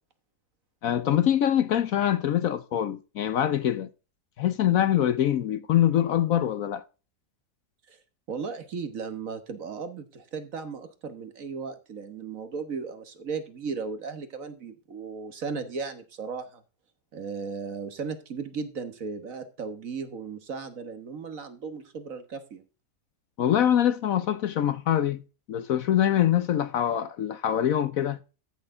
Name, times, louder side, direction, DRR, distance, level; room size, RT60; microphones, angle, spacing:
voice 1, 0.8-3.9 4.4-6.8 23.4-25.2 25.5-28.2, left 10 dB, 65° left, 1.0 m, -24 dB
voice 2, 8.3-16.6 17.1-22.6, right 5 dB, 55° right, 1.6 m, -36 dB
13.5 x 6.5 x 3.8 m
omnidirectional pair, 1.7 m